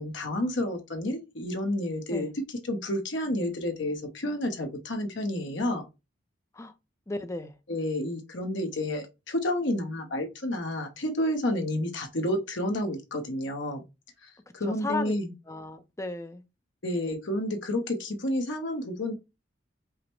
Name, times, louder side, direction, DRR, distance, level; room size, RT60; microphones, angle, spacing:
voice 1, 0.0-5.8 7.7-13.8 14.5-15.3 16.8-19.1, left 1 dB, 75° left, 0.9 m, -30 dB
voice 2, 7.1-7.5 14.7-15.1 15.5-16.4, left 2 dB, 15° left, 0.5 m, -34 dB
4.9 x 2.1 x 4.4 m
head